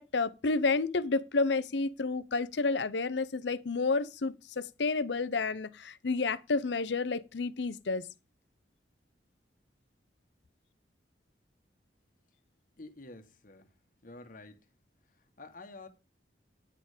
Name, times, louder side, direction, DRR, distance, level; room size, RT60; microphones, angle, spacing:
voice 1, 0.0-8.1, left 3 dB, 75° left, 0.7 m, -30 dB
voice 2, 12.8-13.7 14.0-14.6 15.4-15.9, left 2 dB, 50° left, 1.4 m, -49 dB
9.8 x 6.5 x 5.0 m
head